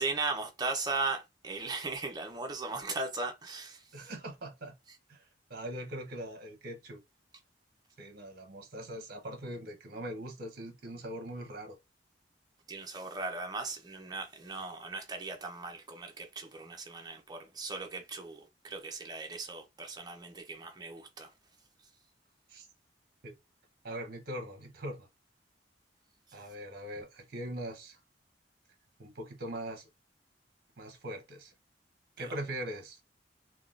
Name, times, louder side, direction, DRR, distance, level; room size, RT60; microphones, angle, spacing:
voice 1, 0.0-3.8 12.7-21.3 32.2-32.3, right 3 dB, 20° right, 0.6 m, -37 dB
voice 2, 3.9-4.7 5.1-5.2 5.5-7.0 8.0-11.8 22.5-22.7 23.2-23.3 23.8-25.1 26.3-28.0 29.0-29.9 30.8-31.5 32.2-33.0, right 1 dB, 55° right, 0.8 m, -41 dB
3.5 x 2.2 x 2.4 m
head